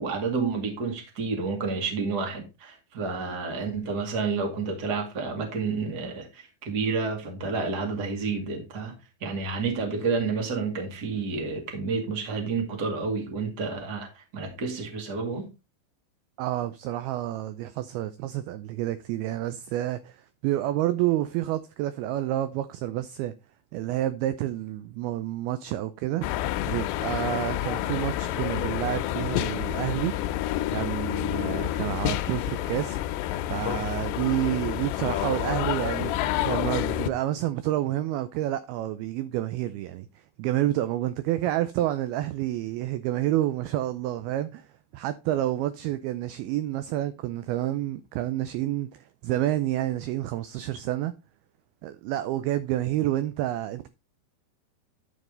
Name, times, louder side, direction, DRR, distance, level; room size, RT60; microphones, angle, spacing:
voice 1, 0.0-9.0 9.2-15.5, right 4 dB, 30° right, 1.9 m, -30 dB
voice 2, 16.4-23.3 23.7-26.3 26.7-30.1 30.7-33.0 33.5-36.1 36.5-40.1 40.4-44.7 44.9-51.1 51.8-53.9, right 14 dB, 85° right, 2.2 m, -29 dB
sound 1, 26.2-37.1, left 13 dB, 80° left, 2.7 m, -29 dB
11.0 x 5.4 x 3.8 m
omnidirectional pair, 5.1 m